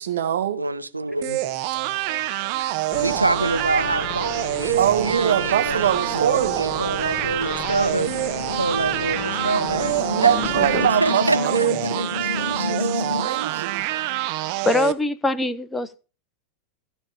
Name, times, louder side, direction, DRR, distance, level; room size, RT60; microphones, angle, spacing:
voice 1, 0.0-0.6 4.8-6.8 10.0-13.8, right 9 dB, 60° right, 1.8 m, -24 dB
voice 2, 0.5-1.4 2.9-8.1 8.5-10.3 10.8-11.7, right 3 dB, 85° right, 0.9 m, -26 dB
sound 1, 1.2-14.9, right 16 dB, 45° right, 0.9 m, -26 dB
sound 2, 2.9-10.9, left 8 dB, 40° left, 1.9 m, -35 dB
sound 3, 7.9-13.3, left 5 dB, 70° left, 0.8 m, -30 dB
voice 3, 10.2-10.9 14.6-16.0, left 2 dB, 10° left, 1.0 m, -24 dB
15.5 x 5.4 x 5.1 m
figure-of-eight pair, 90°, 0 cm